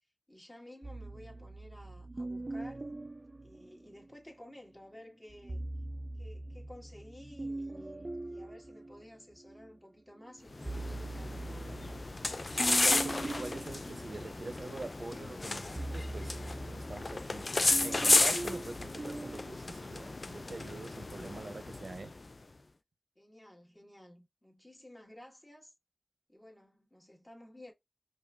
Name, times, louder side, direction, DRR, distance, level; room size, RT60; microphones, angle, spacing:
voice 1, 0.3-2.9 3.4-5.7 6.2-11.9 23.1-25.7 26.3-27.7, left 1 dB, 20° left, 1.5 m, -53 dB
sound 1, 0.8-4.3 5.3-9.7 10.2-19.4, right 2 dB, 45° right, 0.4 m, -42 dB
sound 2, 10.5-22.3, left 2 dB, 55° left, 0.3 m, -33 dB
voice 2, 12.5-22.1, right 3 dB, 85° right, 0.8 m, -45 dB
5.1 x 2.5 x 2.3 m
wide cardioid pair, 65°, 0 cm